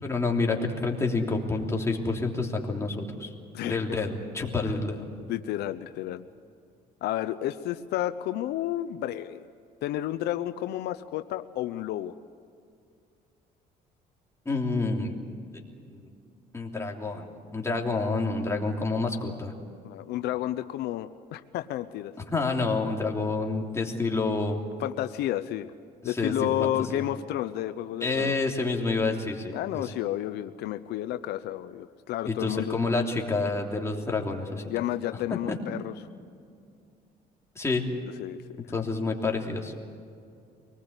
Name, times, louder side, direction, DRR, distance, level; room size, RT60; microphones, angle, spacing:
voice 1, 0.0-3.3 3.6-5.0 14.4-15.2 15.9-16.1 16.5-19.5 22.3-24.6 26.0-27.0 28.0-29.8 32.2-34.7 35.3-35.6 37.5-37.8 38.7-39.7, left 3 dB, 15° left, 0 dB, 3.2 m, -28 dB
voice 2, 3.5-4.0 4.6-4.7 5.3-6.3 7.0-9.5 9.8-12.1 19.8-22.1 24.8-25.7 26.0-28.4 29.5-32.8 34.7-35.9 38.2-38.4, left 13 dB, 80° left, 11 dB, 0.7 m, -31 dB
24.5 x 20.0 x 8.2 m, 2.3 s
cardioid pair, 110°, 17 cm